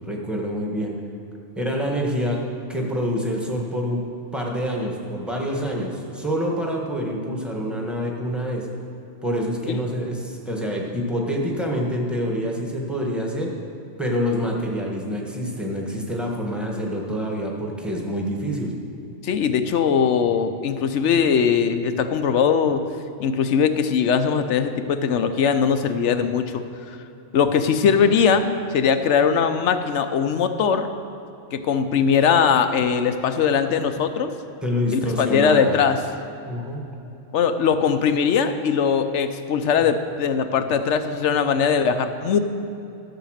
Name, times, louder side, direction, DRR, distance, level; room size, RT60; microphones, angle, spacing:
voice 1, 0.1-1.0 1.5-2.4 2.7-4.0 4.3-8.7 9.2-13.5 14.0-18.7 27.8-27.9 34.6-35.7 36.4-36.8, equal, ahead, -1 dB, 1.4 m, -26 dB
voice 2, 19.2-22.8 23.2-27.0 27.3-30.9 31.5-34.3 34.9-36.0 37.3-42.4, left 6 dB, 70° left, 9 dB, 1.0 m, -20 dB
13.0 x 7.1 x 6.5 m, 2.8 s
omnidirectional pair, 1.3 m